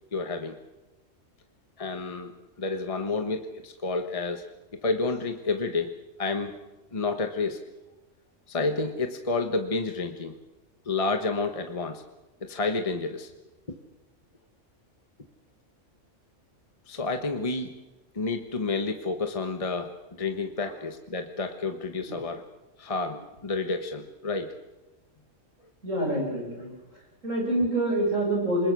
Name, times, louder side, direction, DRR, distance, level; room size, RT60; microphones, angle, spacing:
voice 1, 0.1-0.6 1.8-2.3 2.6-4.5 4.8-6.6 6.9-7.6 8.5-10.3 10.8-12.0 12.4-13.3 16.9-17.8 18.1-19.9 20.2-22.4 22.8-24.6, left 3 dB, 30° left, 6 dB, 1.3 m, -30 dB
voice 2, 25.8-26.7 27.2-28.7, right 1 dB, 80° right, 0 dB, 7.9 m, -26 dB
27.5 x 21.0 x 6.3 m, 1.1 s
omnidirectional pair, 1.3 m